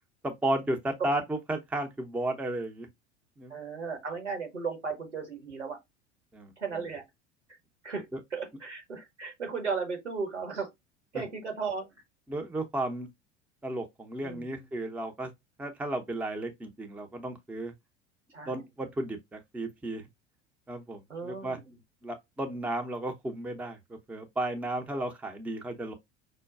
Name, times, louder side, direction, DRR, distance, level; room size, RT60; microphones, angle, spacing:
voice 1, 0.2-2.9 3.4-3.5 6.3-6.5 11.1-11.2 12.3-13.1 13.6-15.3 15.6-17.7 18.5-20.1 20.7-21.6 22.0-23.8 24.1-25.9, right 1 dB, 5° right, 0.5 m, -33 dB
voice 2, 3.5-5.8 6.6-7.0 7.8-10.7 11.1-12.0 14.2-14.6 18.3-18.6 21.1-21.8, right 5 dB, 80° right, 1.1 m, -36 dB
5.3 x 2.2 x 2.3 m
figure-of-eight pair, 75°, 34 cm